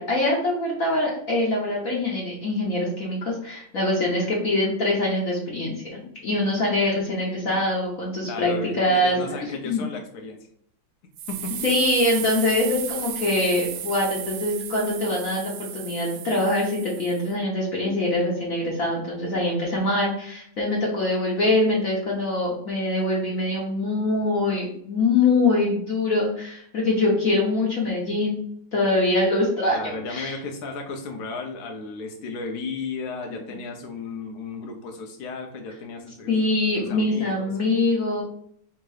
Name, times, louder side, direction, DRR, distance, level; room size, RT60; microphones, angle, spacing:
voice 1, 0.0-9.8 11.6-28.4 28.7-30.3 36.3-38.2, left 2 dB, 50° left, -3 dB, 1.1 m, -24 dB
voice 2, 8.2-10.4 11.3-11.5 29.7-36.3 36.8-37.5, left 4 dB, 75° left, 3 dB, 0.8 m, -34 dB
sound 1, 11.2-17.3, right 9 dB, 75° right, 1.1 m, -34 dB
3.6 x 2.9 x 4.7 m, 0.65 s
omnidirectional pair, 2.1 m